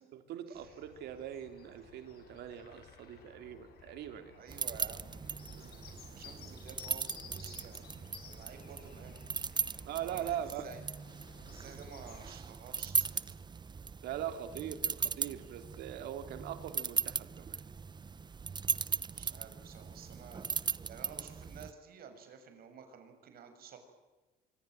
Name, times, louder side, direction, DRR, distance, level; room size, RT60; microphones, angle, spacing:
voice 1, 0.1-4.4 5.5-5.8 9.8-10.7 14.0-17.6, right 10 dB, 80° right, 8 dB, 3.3 m, -41 dB
sound 1, 0.5-12.3, left 7 dB, 65° left, 7.4 m, -56 dB
voice 2, 4.3-7.9 8.2-9.2 9.6-10.8 11.4-13.4 19.2-23.8, right 6 dB, 65° right, 7 dB, 6.9 m, -52 dB
sound 2, 4.5-21.7, right 5 dB, 25° right, 0.9 m, -38 dB
25.0 x 24.0 x 9.1 m, 1.2 s
cardioid pair, 110°, 17 cm